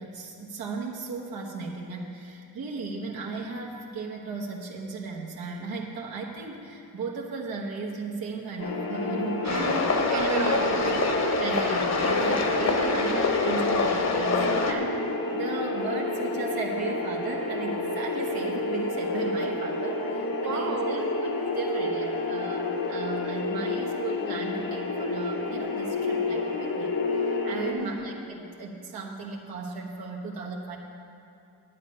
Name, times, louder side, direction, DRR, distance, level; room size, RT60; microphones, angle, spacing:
voice 1, 0.0-9.8 10.1-10.3 11.4-21.3 21.6-30.8, right 4 dB, 70° right, -2 dB, 1.3 m, -36 dB
sound 1, 8.6-27.7, left 2 dB, 65° left, 1.2 m, -30 dB
sound 2, 9.4-14.7, left 3 dB, 45° left, 1.2 m, -26 dB
voice 2, 9.5-11.1 20.4-21.2 27.6-28.0, right 2 dB, 45° right, 1 dB, 1.5 m, -32 dB
10.5 x 8.4 x 5.5 m, 2.6 s
cardioid pair, 85°, 38 cm